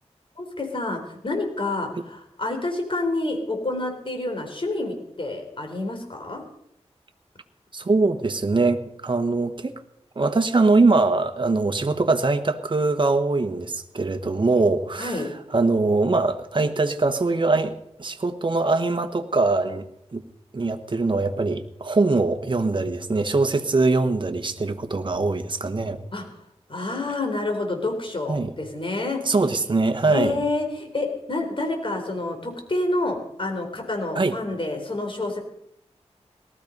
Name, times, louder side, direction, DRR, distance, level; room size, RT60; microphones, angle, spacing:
voice 1, 0.4-6.4 15.0-15.3 26.1-26.2 26.7-29.2 30.1-35.4, left 2 dB, 50° left, 4 dB, 4.1 m, -28 dB
voice 2, 7.7-9.7 10.1-15.2 15.5-17.7 18.0-19.9 20.1-20.2 20.5-26.0 28.3-28.5 29.2-30.4 34.1-34.3, right 3 dB, 45° right, 7 dB, 1.2 m, -22 dB
19.0 x 13.5 x 5.3 m, 0.76 s
wide cardioid pair, 70°, 12 cm